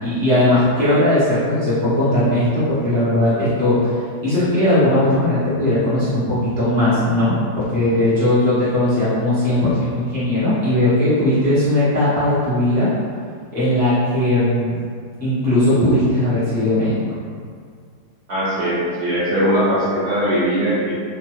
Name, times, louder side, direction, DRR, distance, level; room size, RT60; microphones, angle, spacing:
voice 1, 0.0-3.9 4.2-12.9 13.5-14.8 15.2-17.0, left 1 dB, 10° left, -13 dB, 0.5 m, -18 dB
voice 2, 18.3-20.9, equal, 60° right, -9 dB, 1.2 m, -20 dB
2.7 x 2.2 x 3.0 m, 2.1 s
omnidirectional pair, 1.7 m